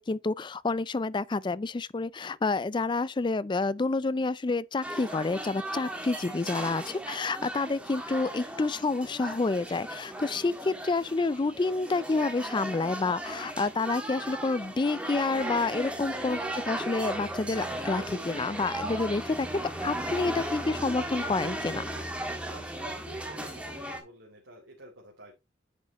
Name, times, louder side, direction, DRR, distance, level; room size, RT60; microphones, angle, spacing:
voice 1, 0.0-19.5 19.8-21.8, left 3 dB, 25° left, 0.4 m, -29 dB
sound 1, 4.8-24.0, right 1 dB, 5° right, 1.7 m, -36 dB
voice 2, 16.0-16.5 22.5-25.3, right 1 dB, 75° right, 2.9 m, -50 dB
9.8 x 6.4 x 3.0 m
head